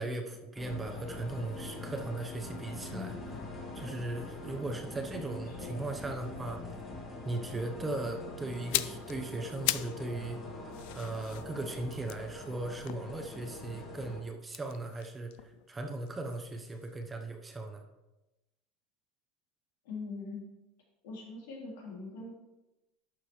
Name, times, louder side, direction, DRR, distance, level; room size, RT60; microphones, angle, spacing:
voice 1, 0.0-3.1 3.7-6.6 7.2-10.4 10.9-17.8, right 2 dB, 10° right, 4 dB, 0.8 m, -38 dB
sound 1, 0.6-14.2, left 2 dB, 25° left, 2.3 m, -43 dB
voice 2, 2.9-3.3 5.5-5.9 19.8-20.5 21.0-22.3, left 3 dB, 90° left, -3 dB, 3.6 m, -42 dB
sound 2, 8.5-10.1 10.4-13.6 14.4-16.5 16.7-16.9, left 17 dB, 65° left, 0.3 m, -38 dB
11.5 x 6.7 x 3.2 m, 0.99 s
supercardioid pair, 155°, 0 cm